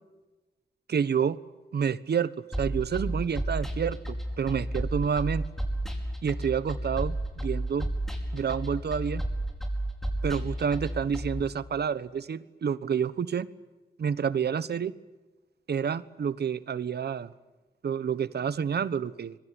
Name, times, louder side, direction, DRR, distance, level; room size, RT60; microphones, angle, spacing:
voice 1, 0.9-1.4 1.7-2.3 2.6-5.4 6.2-7.9 8.3-9.2 10.2-13.5 14.0-14.9 15.7-17.3 17.8-19.4, right 7 dB, 75° right, 1.2 m, -29 dB
sound 1, 2.5-11.4, right 1 dB, ahead, 5.1 m, -32 dB
25.5 x 23.5 x 9.1 m
wide cardioid pair, 125°, 17 cm